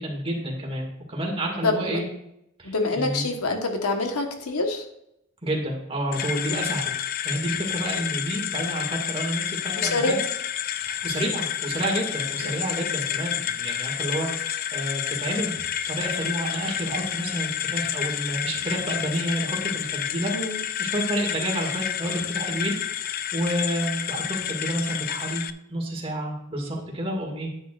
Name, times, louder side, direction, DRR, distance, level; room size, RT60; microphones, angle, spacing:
voice 1, 0.0-2.1 2.6-3.3 5.4-6.9 7.2-10.3 10.8-15.6 15.9-20.3 20.8-25.4 25.7-27.5, right 1 dB, 25° right, -1 dB, 2.3 m, -29 dB
voice 2, 1.6-2.0 2.6-4.8 9.8-10.1 20.3-20.6, left 3 dB, 80° left, 4 dB, 1.4 m, -26 dB
sound 1, 6.1-25.5, left 10 dB, 45° left, 0.4 m, -30 dB
10.0 x 9.1 x 2.6 m, 0.81 s
head